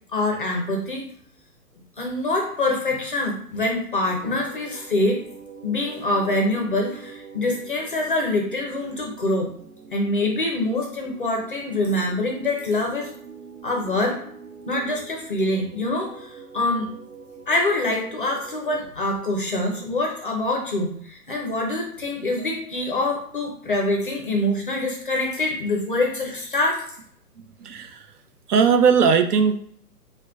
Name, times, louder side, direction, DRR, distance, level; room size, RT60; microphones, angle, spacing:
voice 1, 0.1-1.1 2.0-5.2 5.6-9.5 9.9-13.1 13.6-14.2 14.7-16.9 17.5-26.8, left 2 dB, 35° left, 1 dB, 0.4 m, -25 dB
sound 1, 3.9-18.9, right 5 dB, 55° right, 1.1 m, -44 dB
sound 2, 22.4-23.6, right 1 dB, 25° right, 1.1 m, -51 dB
voice 2, 27.4-28.1 28.5-29.6, right 6 dB, 70° right, 7 dB, 0.6 m, -19 dB
4.7 x 2.2 x 2.3 m, 0.62 s
hypercardioid pair, 150°, 48 cm